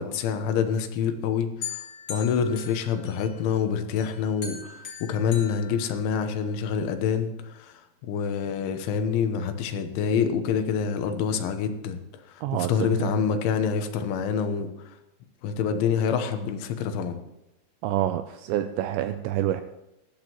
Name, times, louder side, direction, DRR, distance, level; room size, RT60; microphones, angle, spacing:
voice 1, 0.0-1.8 2.1-7.8 8.1-12.0 12.3-14.7 15.4-17.2, left 7 dB, 80° left, 7 dB, 3.5 m, -26 dB
sound 1, 1.6-3.6 4.0-6.5, left 6 dB, 45° left, 2.0 m, -40 dB
voice 2, 12.4-13.1 17.8-19.6, right 12 dB, 85° right, 9 dB, 2.5 m, -27 dB
19.5 x 13.5 x 3.0 m, 0.87 s
omnidirectional pair, 5.5 m